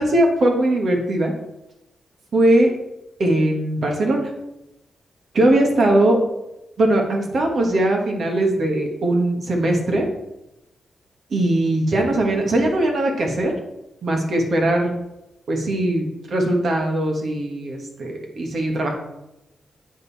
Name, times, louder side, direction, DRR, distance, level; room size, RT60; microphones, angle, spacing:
voice 1, 0.0-1.3 2.3-2.7 3.2-4.3 5.3-6.2 6.8-10.1 11.3-13.5 14.0-14.9 15.5-18.9, right 1 dB, 60° right, 2 dB, 1.7 m, -20 dB
8.1 x 5.3 x 4.2 m, 0.91 s
cardioid pair, 105°, 0 cm